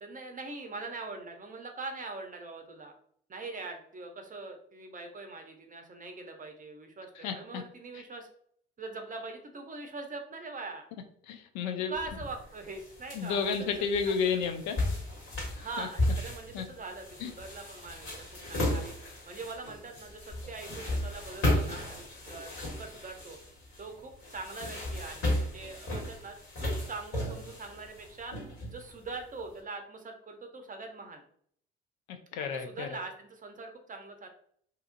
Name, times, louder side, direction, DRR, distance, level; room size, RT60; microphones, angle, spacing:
voice 1, 0.0-2.9 3.3-8.3 8.8-10.9 11.9-13.7 14.1-14.5 15.6-18.9 19.3-23.4 23.8-28.3 28.7-31.2 32.4-34.3, right 3 dB, 25° right, 4 dB, 0.6 m, -42 dB
voice 2, 7.2-7.6 11.3-11.9 13.1-14.8 15.5-15.9 16.5-16.6 17.2-17.3 32.1-33.0, left 6 dB, 65° left, 7 dB, 0.5 m, -32 dB
sound 1, 11.9-29.4, left 1 dB, 45° left, 1.4 m, -35 dB
2.8 x 2.4 x 2.5 m, 0.63 s
hypercardioid pair, 50°, 31 cm